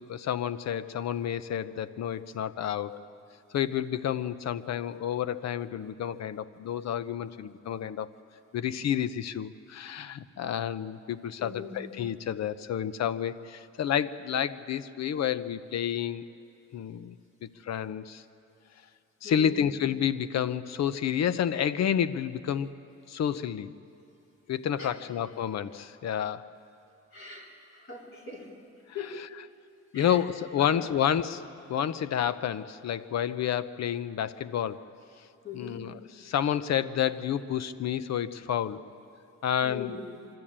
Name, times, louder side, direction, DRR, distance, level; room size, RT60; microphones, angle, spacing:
voice 1, 0.0-3.1 3.5-8.1 8.5-16.2 16.7-17.2 17.4-18.2 19.2-22.7 23.1-23.7 24.5-26.5 29.9-31.4 31.7-34.8 35.5-35.9 36.2-38.8 39.4-39.9, left 9 dB, 60° left, 15 dB, 0.8 m, -30 dB
voice 2, 11.4-11.8 19.2-19.6 24.8-24.9 27.1-28.5 28.9-29.1 29.9-30.2 30.6-30.8 35.4-35.8 39.6-40.2, left 5 dB, 45° left, -2 dB, 4.3 m, -41 dB
25.0 x 12.5 x 8.8 m, 2.6 s
cardioid pair, 90°, 30 cm